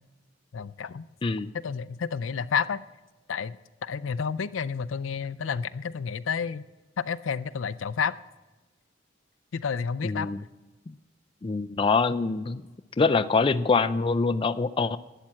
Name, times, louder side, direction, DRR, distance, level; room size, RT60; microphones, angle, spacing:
voice 1, 0.5-1.1 1.5-2.8 3.3-6.6 7.0-8.1 9.5-10.3, left 6 dB, 90° left, 15 dB, 0.5 m, -30 dB
voice 2, 10.0-10.4 10.9-11.0 11.4-12.6 13.0-15.0, left 4 dB, 25° left, 10 dB, 0.4 m, -24 dB
12.0 x 9.0 x 8.5 m, 1.2 s
head